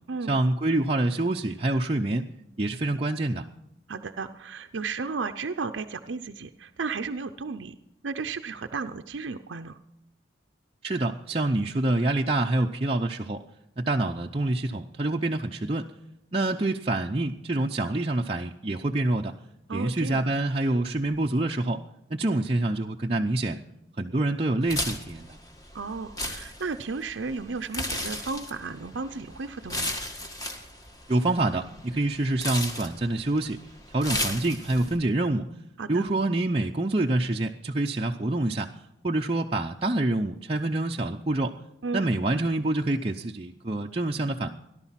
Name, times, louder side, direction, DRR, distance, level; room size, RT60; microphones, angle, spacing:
voice 1, 0.3-2.3 2.6-3.5 10.8-13.4 13.8-15.9 16.3-19.3 19.7-21.8 22.1-23.6 24.0-25.4 31.1-33.6 33.9-35.5 35.9-38.7 39.0-41.5 41.9-44.5, right 2 dB, 30° right, 1 dB, 0.6 m, -26 dB
voice 2, 3.9-7.8 8.0-9.8 19.7-20.2 25.7-30.0 35.8-36.1 41.8-42.1, right 4 dB, 90° right, 7 dB, 0.7 m, -34 dB
sound 1, 24.6-35.0, left 1 dB, 20° left, 1.7 m, -35 dB
17.5 x 11.5 x 5.8 m, 0.84 s
head